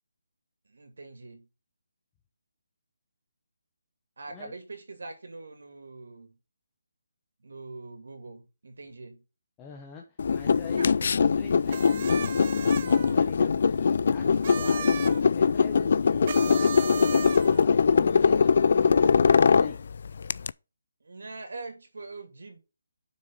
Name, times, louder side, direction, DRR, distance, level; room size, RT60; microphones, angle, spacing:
voice 1, 0.7-1.5 4.2-6.4 7.4-9.2 10.8-11.1 21.0-22.6, right 3 dB, 75° right, 2.6 m, -43 dB
voice 2, 9.6-15.0 15.3-19.8, left 6 dB, 10° left, 1.0 m, -45 dB
sound 1, 10.2-20.5, left 5 dB, 50° left, 0.3 m, -22 dB
sound 2, 11.7-13.2 14.3-15.2 16.2-17.7, right 7 dB, 35° right, 0.6 m, -36 dB
7.2 x 6.3 x 3.8 m
hypercardioid pair, 170°, 0 cm